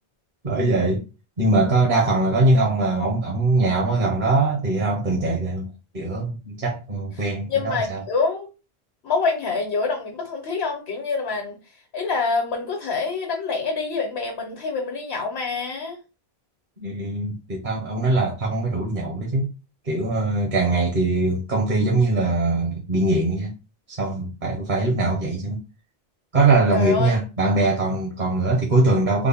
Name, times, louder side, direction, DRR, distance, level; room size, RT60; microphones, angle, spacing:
voice 1, 0.4-1.0 1.4-8.0 16.8-19.5 19.8-23.5 23.9-25.6 26.3-29.3, right 2 dB, 50° right, 1.0 m, -22 dB
voice 2, 7.2-8.5 9.0-11.6 11.9-16.0 26.7-27.2, left 4 dB, 75° left, 1.2 m, -26 dB
3.7 x 2.1 x 3.4 m
omnidirectional pair, 1.0 m